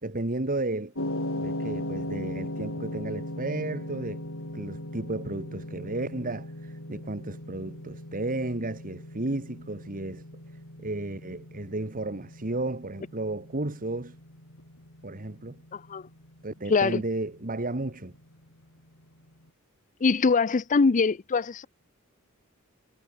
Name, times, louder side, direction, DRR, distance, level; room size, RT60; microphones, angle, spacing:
voice 1, 0.0-0.9 1.4-4.2 4.5-10.2 10.8-14.2 15.0-15.6 16.4-18.1, right 2 dB, 40° right, 1.6 m, -33 dB
sound 1, 1.0-19.2, left 1 dB, 70° left, 7.0 m, -39 dB
voice 2, 15.7-16.0 16.7-17.0 20.0-21.7, left 4 dB, 35° left, 0.5 m, -23 dB
head